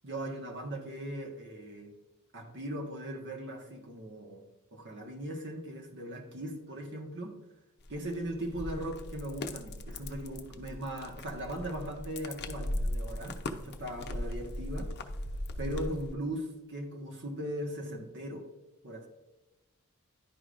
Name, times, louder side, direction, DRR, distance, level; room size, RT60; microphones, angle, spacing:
voice 1, 0.0-1.9 2.3-4.4 4.7-7.4 7.9-14.9 15.6-18.5 18.8-19.1, right 1 dB, 55° right, 1 dB, 1.3 m, -39 dB
sound 1, 7.8-16.1, left 1 dB, 50° left, 0.6 m, -38 dB
11.0 x 4.9 x 2.6 m, 1.1 s
head